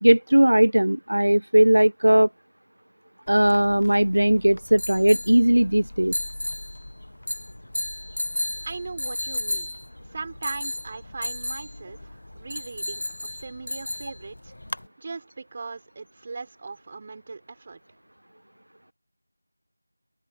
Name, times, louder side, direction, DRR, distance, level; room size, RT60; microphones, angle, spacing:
voice 1, 0.0-2.3 3.3-6.1, right 1 dB, 70° right, 0.5 m, -18 dB
sound 1, 3.3-14.9, left 1 dB, 60° left, 1.3 m, -34 dB
voice 2, 8.6-9.8 10.1-14.5 15.0-17.8, right 4 dB, 25° right, 5.3 m, -39 dB
open air
figure-of-eight pair, 170°, 0 cm